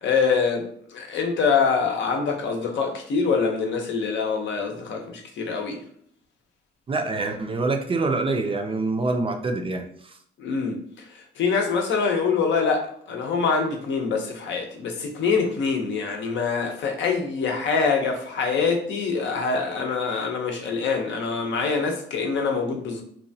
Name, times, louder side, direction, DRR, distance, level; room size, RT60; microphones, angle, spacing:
voice 1, 0.0-5.8 10.4-10.8 11.1-23.0, left 5 dB, 70° left, 2 dB, 0.6 m, -25 dB
voice 2, 6.9-10.2, right 3 dB, 25° right, 4 dB, 0.4 m, -26 dB
2.9 x 2.2 x 2.6 m, 0.64 s
cardioid pair, 90°, 20 cm